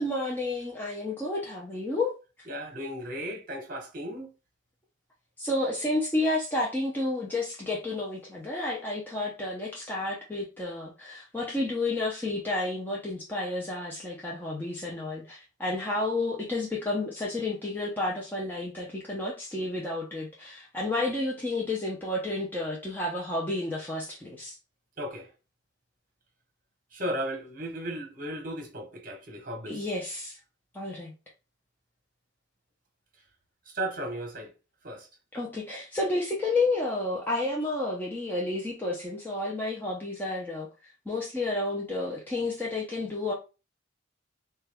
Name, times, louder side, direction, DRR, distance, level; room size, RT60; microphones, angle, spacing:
voice 1, 0.0-2.1 5.4-24.6 29.7-30.4 30.7-31.1 35.3-43.3, left 2 dB, 10° left, 0.6 m, -31 dB
voice 2, 2.5-4.3 25.0-25.3 26.9-29.8 33.7-34.5 34.8-35.1, right 1 dB, 45° right, 1.0 m, -35 dB
3.7 x 2.3 x 3.4 m
head